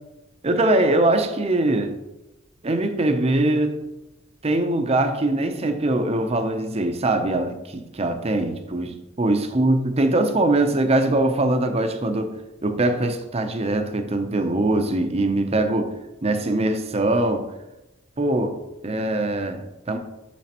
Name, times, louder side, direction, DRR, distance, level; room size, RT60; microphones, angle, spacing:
voice 1, 0.4-1.9 2.6-3.8 4.4-12.4 12.6-15.9 16.2-17.5 18.2-20.0, right 2 dB, 30° right, 7 dB, 0.6 m, -22 dB
7.3 x 6.1 x 2.9 m, 0.96 s
head